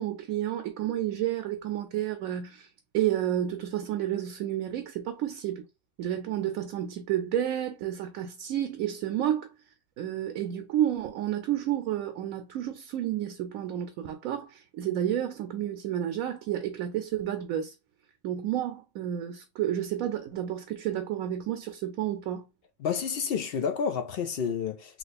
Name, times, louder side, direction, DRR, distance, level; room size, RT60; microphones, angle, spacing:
voice 1, 0.0-5.6 6.0-9.5 10.0-17.7 18.2-22.5, right 11 dB, 80° right, 1.0 m, -31 dB
voice 2, 22.8-25.0, left 6 dB, 65° left, 0.6 m, -30 dB
3.0 x 2.9 x 4.0 m
omnidirectional pair, 1.4 m